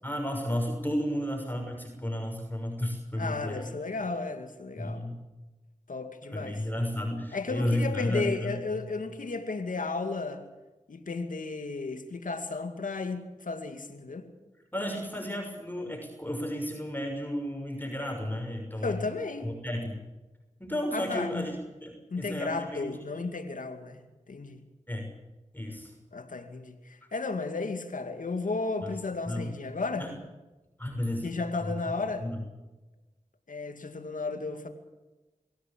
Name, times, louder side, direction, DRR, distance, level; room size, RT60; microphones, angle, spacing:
voice 1, 0.0-3.7 4.8-5.2 6.3-8.8 14.7-19.1 19.4-20.0 20.6-22.9 24.9-25.1 25.5-25.9 28.8-28.9 29.3-29.5 30.0-30.2 30.8-31.3 31.6-31.7 32.2-32.4, left 1 dB, 15° left, 1 dB, 6.2 m, -33 dB
voice 2, 3.2-5.0 5.9-6.6 7.3-10.4 10.9-14.3 18.8-19.5 20.9-21.5 22.1-24.6 26.1-30.1 31.2-32.3 33.5-34.7, left 3 dB, 85° left, 7 dB, 2.4 m, -34 dB
24.5 x 17.0 x 8.6 m, 1.1 s
cardioid pair, 40°, 13 cm